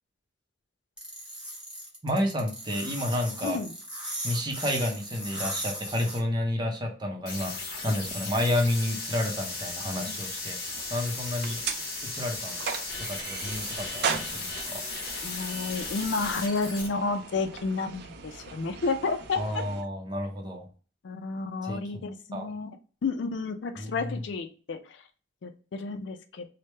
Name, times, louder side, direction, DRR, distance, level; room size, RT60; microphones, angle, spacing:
sound 1, 1.0-6.2, equal, 5° right, 1.1 m, -37 dB
voice 1, 2.0-3.6 4.2-11.6 12.0-12.6 13.0-14.8 19.4-20.7 21.6-22.0 22.3-22.5 23.8-24.3, left 1 dB, 25° right, 1 dB, 0.7 m, -30 dB
sound 2, 7.3-16.9, left 3 dB, 55° left, 1.0 m, -36 dB
sound 3, 10.6-19.8, right 6 dB, 60° right, 0.4 m, -38 dB
voice 2, 15.2-19.6 21.0-22.7 23.0-24.8 25.4-26.5, left 4 dB, 75° left, 8 dB, 0.4 m, -31 dB
3.2 x 2.1 x 3.1 m, 0.38 s
head